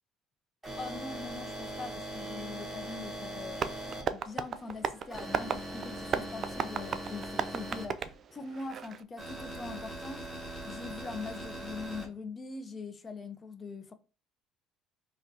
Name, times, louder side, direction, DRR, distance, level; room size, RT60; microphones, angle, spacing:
sound 1, 0.6-4.0 5.1-7.8 9.2-12.0, right 1 dB, 10° right, 1.8 m, -41 dB
voice 1, 0.8-13.9, left 4 dB, 35° left, 0.4 m, -42 dB
Tap, 3.5-9.0, right 6 dB, 45° right, 0.3 m, -36 dB
5.0 x 2.1 x 2.6 m
supercardioid pair, 75°, 0 cm